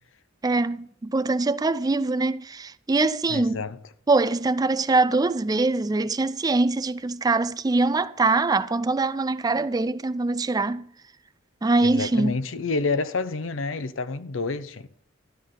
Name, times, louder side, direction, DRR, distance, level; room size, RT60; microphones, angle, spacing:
voice 1, 0.4-3.6 4.1-10.9 11.6-12.4, right 3 dB, 20° right, 0.4 m, -23 dB
voice 2, 3.3-3.8 11.8-14.9, left 3 dB, 90° left, 0.7 m, -28 dB
12.5 x 11.5 x 3.8 m
head